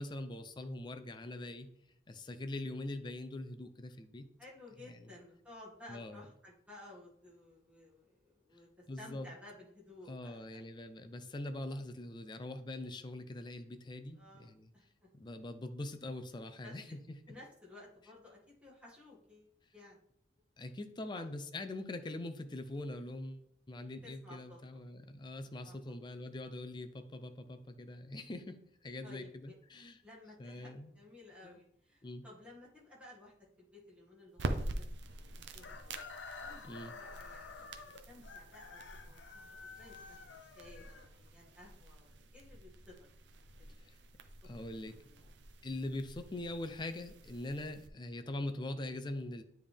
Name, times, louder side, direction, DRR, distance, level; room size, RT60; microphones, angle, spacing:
voice 1, 0.0-1.7 2.1-4.3 4.8-5.1 5.9-6.2 8.9-9.3 10.1-14.7 15.1-17.4 20.6-30.0 30.4-30.9 31.4-31.6 32.0-32.2 36.6-36.9 43.8-43.9 44.4-45.0 45.6-49.4, left 1 dB, 25° left, 8 dB, 0.4 m, -43 dB
voice 2, 4.4-8.7 9.0-10.6 14.1-14.9 16.6-17.0 17.3-20.0 21.1-21.2 24.0-24.9 25.6-25.9 29.0-29.5 30.0-36.0 36.4-36.6 36.9-37.7 38.1-43.1 43.6-43.9 44.9-45.3, left 2 dB, 5° right, -6 dB, 2.0 m, -56 dB
sound 1, 34.3-47.9, right 2 dB, 80° right, 0.6 m, -46 dB
Chicken rooster, 35.6-41.5, left 4 dB, 90° left, 0.6 m, -50 dB
9.5 x 3.5 x 3.4 m, 0.72 s
head